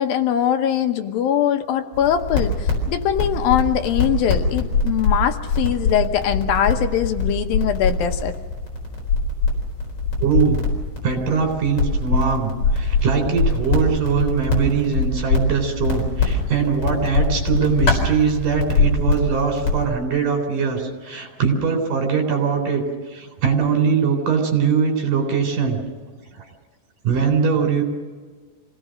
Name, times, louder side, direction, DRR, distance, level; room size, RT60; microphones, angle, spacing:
voice 1, 0.0-8.3, left 10 dB, 75° left, 7 dB, 2.8 m, -21 dB
sound 1, 1.9-19.8, left 3 dB, 40° left, 5.1 m, -23 dB
voice 2, 10.2-10.6 11.0-22.8 23.1-25.8 26.4-26.5 27.0-27.8, right 6 dB, 60° right, 4 dB, 5.3 m, -21 dB
26.5 x 17.5 x 6.5 m, 1.4 s
omnidirectional pair, 4.3 m